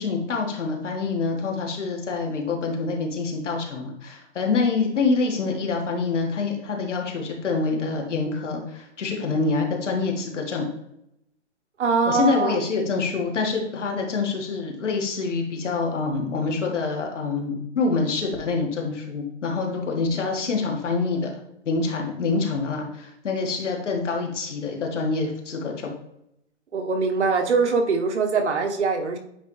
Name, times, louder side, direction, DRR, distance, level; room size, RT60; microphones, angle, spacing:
voice 1, 0.0-10.7 12.1-21.3 21.7-25.9, left 4 dB, 75° left, 1 dB, 1.9 m, -26 dB
voice 2, 11.8-12.6 26.7-29.2, right 4 dB, 70° right, 4 dB, 1.2 m, -22 dB
9.2 x 3.5 x 3.1 m, 0.79 s
hypercardioid pair, 175°, 36 cm